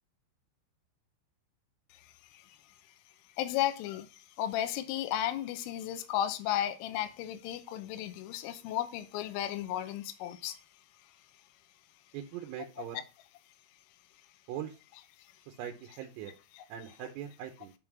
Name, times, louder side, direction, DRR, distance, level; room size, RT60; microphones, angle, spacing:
voice 1, 2.0-2.4 3.4-4.1 4.4-10.6, left 12 dB, 85° left, 3.2 m, -34 dB
voice 2, 12.1-13.0 14.5-14.8 15.5-16.3 16.7-17.7, right 10 dB, 85° right, 3.5 m, -41 dB
9.7 x 3.7 x 5.9 m
omnidirectional pair, 6.0 m